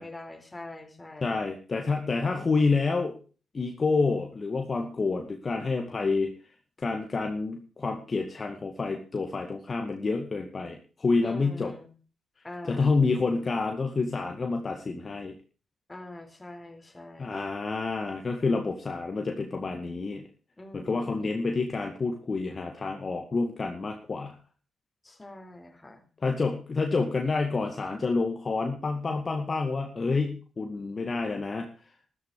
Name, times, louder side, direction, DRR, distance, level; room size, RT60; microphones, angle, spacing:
voice 1, 0.0-1.4 11.2-11.9 12.4-13.0 15.9-17.5 20.6-21.3 25.0-26.1, left 2 dB, 20° left, 5 dB, 4.1 m, -44 dB
voice 2, 1.2-3.1 3.5-6.3 6.8-11.7 12.6-15.3 17.2-20.2 20.7-24.4 26.2-31.7, left 3 dB, 40° left, 3 dB, 2.2 m, -28 dB
13.5 x 12.5 x 4.9 m, 0.38 s
hypercardioid pair, 45°, 0 cm